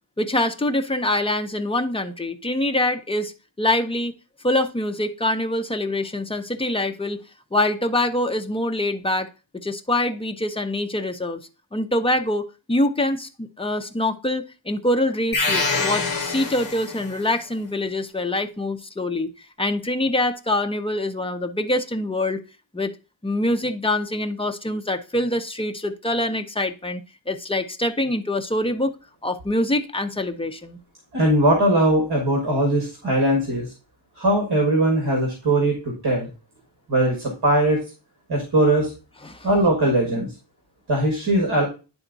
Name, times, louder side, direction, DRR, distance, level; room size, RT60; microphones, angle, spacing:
voice 1, 0.2-3.3 3.6-4.1 4.4-7.2 7.5-9.3 9.5-11.4 11.7-19.3 19.6-22.4 22.7-22.9 23.2-28.9 29.2-30.8 39.2-39.5, left 1 dB, 10° left, 6 dB, 0.5 m, -24 dB
sound 1, 15.3-17.2, left 4 dB, 45° left, 1.0 m, -25 dB
voice 2, 31.1-33.7 34.2-36.3 36.9-37.8 38.3-38.9 39.4-40.3 40.9-41.6, right 1 dB, 50° right, 1 dB, 1.8 m, -20 dB
10.0 x 3.5 x 3.9 m, 0.32 s
wide cardioid pair, 165°, 49 cm